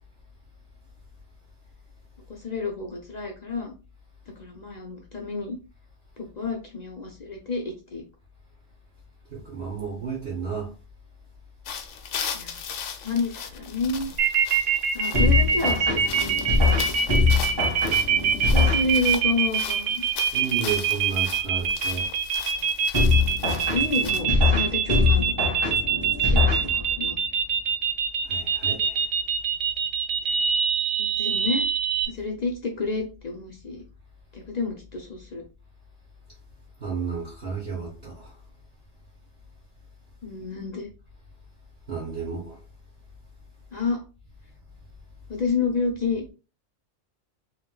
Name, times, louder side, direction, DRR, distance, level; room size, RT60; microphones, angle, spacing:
voice 1, 2.3-3.7 4.4-5.6 6.2-8.0 12.3-12.7 13.0-14.1 14.6-16.4 16.7-16.8 17.1-17.2 18.3-20.0 23.7-25.5 26.3-27.2 30.2-30.4 31.0-31.7 32.1-33.8 34.3-35.4 40.2-40.9 43.7-44.0 45.3-46.3, left 3 dB, 50° left, 0.5 m, -30 dB
voice 2, 9.3-10.7 20.3-22.1 26.5-26.7 28.2-29.1 36.8-38.3 41.9-42.6, right 5 dB, 55° right, 1.3 m, -32 dB
sound 1, 11.7-24.2, left 7 dB, 75° left, 0.9 m, -38 dB
sound 2, 14.2-32.1, right 7 dB, 75° right, 0.8 m, -24 dB
sound 3, 15.1-19.3 22.9-27.1, left 4 dB, 20° right, 1.2 m, -23 dB
3.5 x 2.9 x 2.2 m
omnidirectional pair, 1.3 m